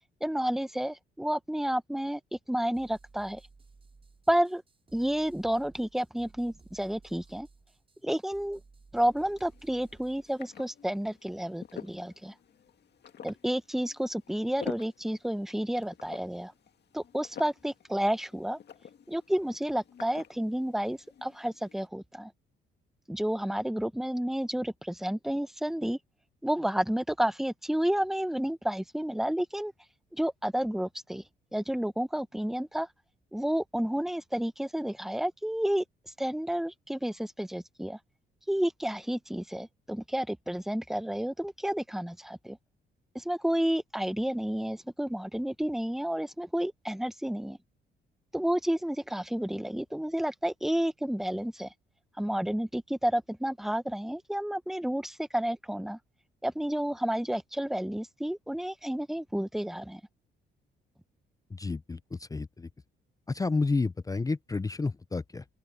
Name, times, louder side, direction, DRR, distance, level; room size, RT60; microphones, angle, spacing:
voice 1, 0.2-2.2 2.5-3.4 4.3-4.6 4.9-7.5 8.0-8.6 8.9-12.3 13.2-16.5 16.9-18.6 19.1-22.3 23.1-26.0 26.4-29.7 30.1-31.2 31.5-32.9 33.3-35.8 36.2-38.0 38.5-42.6 43.1-47.6 48.3-51.7 52.2-56.0 56.4-60.0, equal, ahead, 0.9 m, -31 dB
sound 1, 2.7-10.4, right 4 dB, 30° right, 6.1 m, -58 dB
sound 2, 9.0-21.9, left 8 dB, 55° left, 2.0 m, -49 dB
voice 2, 61.5-62.7 63.3-65.4, left 3 dB, 15° left, 0.5 m, -30 dB
open air
cardioid pair, 90°, 20 cm